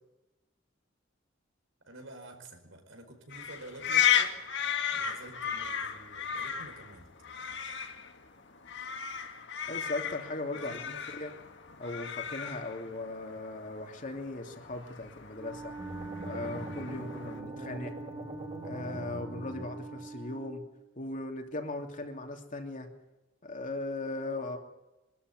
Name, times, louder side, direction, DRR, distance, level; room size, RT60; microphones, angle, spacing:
voice 1, 1.9-4.4 4.9-7.1 10.6-11.0, right 1 dB, 80° right, 5 dB, 5.0 m, -49 dB
sound 1, 3.3-17.4, left 9 dB, 65° left, 2.2 m, -35 dB
voice 2, 9.7-11.3 11.8-15.7 16.2-17.9 18.6-20.6 21.0-22.9 23.4-24.6, left 2 dB, 40° left, 3 dB, 3.0 m, -38 dB
Wind instrument woodwind instrument, 15.3-20.7, right 5 dB, 15° right, 1.7 m, -44 dB
sound 2, 15.8-20.1, equal, 35° right, 2.6 m, -43 dB
23.0 x 13.0 x 9.7 m, 0.98 s
head